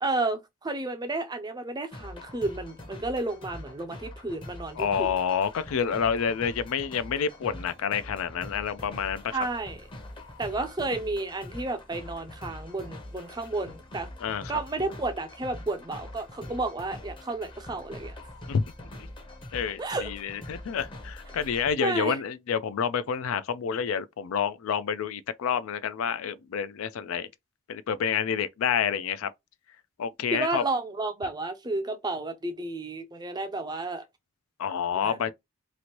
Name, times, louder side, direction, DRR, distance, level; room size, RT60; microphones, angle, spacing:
voice 1, 0.0-5.1 9.3-9.9 10.4-14.1 14.5-18.2 19.8-20.1 21.8-22.2 30.3-34.0 35.0-35.2, right 2 dB, 20° right, 0.4 m, -32 dB
sound 1, 1.9-21.7, left 1 dB, 25° left, 0.7 m, -44 dB
voice 2, 4.8-9.4 14.2-14.6 18.5-18.6 19.5-27.3 27.7-29.3 30.0-30.6 34.6-35.3, left 7 dB, 75° left, 0.4 m, -28 dB
3.0 x 2.5 x 2.8 m
head